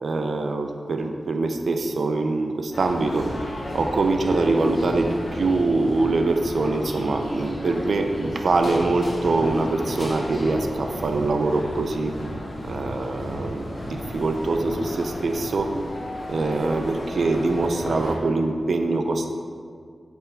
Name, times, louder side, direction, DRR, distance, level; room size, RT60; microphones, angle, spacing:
voice 1, 0.0-3.3 3.7-12.2 12.6-15.8 16.3-19.3, right 3 dB, 75° right, 5 dB, 0.6 m, -24 dB
sound 1, 2.7-18.1, left 1 dB, 50° left, 1.5 m, -34 dB
7.7 x 3.6 x 5.8 m, 2.1 s
cardioid pair, 60°, 0 cm